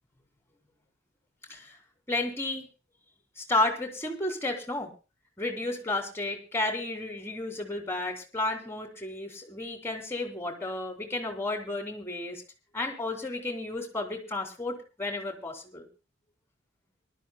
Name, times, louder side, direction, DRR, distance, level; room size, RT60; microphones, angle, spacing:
voice 1, 2.1-2.7 3.4-4.9 5.4-12.4 12.7-15.9, left 2 dB, 10° left, 4 dB, 3.0 m, -32 dB
24.5 x 12.5 x 2.2 m, 0.31 s
head